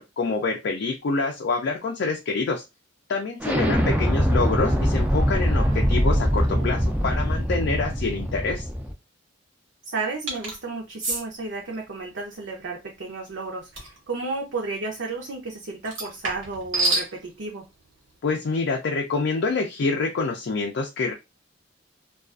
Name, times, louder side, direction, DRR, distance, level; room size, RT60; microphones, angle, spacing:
voice 1, 0.0-2.6 3.1-8.6 18.2-21.1, left 4 dB, 60° left, 1 dB, 0.4 m, -26 dB
Explosion, 3.4-8.9, equal, 5° right, 0.3 m, -23 dB
voice 2, 5.5-6.7 9.9-17.7, right 3 dB, 65° right, -1 dB, 0.6 m, -33 dB
sound 1, 10.3-10.6 11.0-11.2 13.8-14.0 15.9-17.1, right 2 dB, 85° right, 1.1 m, -26 dB
2.3 x 2.3 x 2.4 m, 0.24 s
head